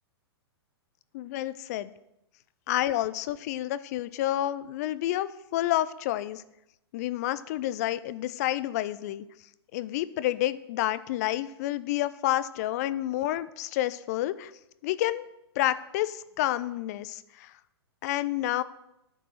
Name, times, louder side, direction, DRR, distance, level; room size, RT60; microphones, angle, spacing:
voice 1, 1.1-1.9 2.7-6.4 6.9-9.2 9.7-14.5 14.8-15.3 15.6-17.5 18.0-18.6, left 14 dB, 35° left, 15 dB, 0.5 m, -29 dB
9.7 x 4.6 x 7.5 m, 0.87 s
figure-of-eight pair, 110°, 14 cm